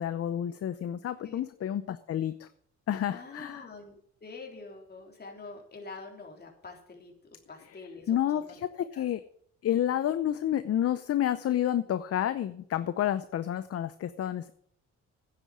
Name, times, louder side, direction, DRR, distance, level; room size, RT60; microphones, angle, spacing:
voice 1, 0.0-2.5 2.9-3.6 8.1-9.2 9.6-14.5, left 11 dB, 50° left, 13 dB, 0.7 m, -30 dB
voice 2, 3.1-7.1 7.5-9.1, left 3 dB, 35° left, 1 dB, 3.6 m, -46 dB
9.8 x 8.5 x 7.6 m, 0.64 s
cardioid pair, 90°, 30 cm